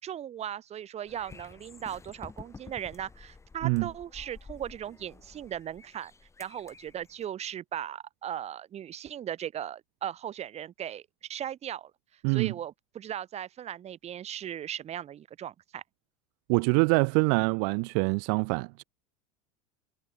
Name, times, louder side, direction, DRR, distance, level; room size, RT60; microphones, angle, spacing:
voice 1, 0.0-6.1 6.4-11.0 11.3-11.9 12.3-15.8, right 10 dB, 35° right, 7.4 m, -38 dB
sound 1, 1.1-7.3, left 4 dB, 15° left, 7.4 m, -50 dB
voice 2, 16.5-18.8, right 40 dB or more, 65° right, 1.4 m, -25 dB
hypercardioid pair, 105°, 18 cm